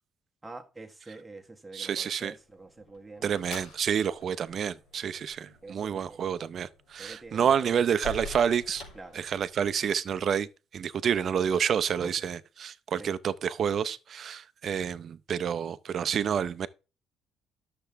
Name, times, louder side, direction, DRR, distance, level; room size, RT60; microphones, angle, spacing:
voice 1, 0.4-3.5 5.6-6.2 7.0-7.8 8.9-9.2 12.0-12.1 13.0-13.1, right 3 dB, 10° right, 1.2 m, -45 dB
voice 2, 1.7-2.3 3.2-8.8 9.1-10.5 10.7-16.7, right 8 dB, 45° right, 0.6 m, -29 dB
sound 1, 2.4-9.8, left 2 dB, 90° left, 3.5 m, -47 dB
11.5 x 6.9 x 3.4 m
cardioid pair, 145°, 0 cm